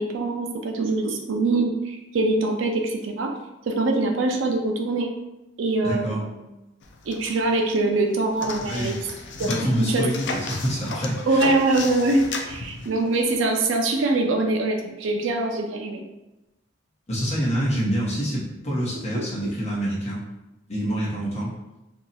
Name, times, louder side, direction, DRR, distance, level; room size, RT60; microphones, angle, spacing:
voice 1, 0.0-3.3 3.7-5.1 5.6-6.4 7.1-9.0 9.4-9.5 9.8-10.1 11.3-16.0 19.1-19.2, right 2 dB, 75° right, 2 dB, 0.4 m, -23 dB
voice 2, 5.8-6.2 8.6-9.0 9.4-11.5 17.1-20.2 20.7-21.5, equal, 35° left, -6 dB, 1.0 m, -26 dB
sound 1, 6.8-7.7 8.0-13.4, left 3 dB, 65° left, 0.4 m, -34 dB
2.7 x 2.3 x 4.0 m, 0.98 s
head